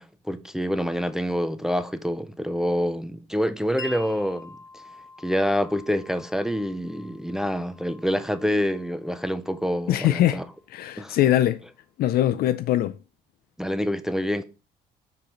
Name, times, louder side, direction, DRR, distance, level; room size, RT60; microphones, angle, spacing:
voice 1, 0.0-4.6 5.2-10.4 11.0-11.2 13.6-14.4, equal, 5° right, 0.5 m, -26 dB
Wind chime, 3.8-11.4, left 2 dB, 20° left, 1.1 m, -47 dB
voice 2, 9.9-10.4 10.7-11.6 12.0-13.0, left 13 dB, 65° left, 0.4 m, -22 dB
6.8 x 3.8 x 4.2 m
cardioid pair, 110°, 17 cm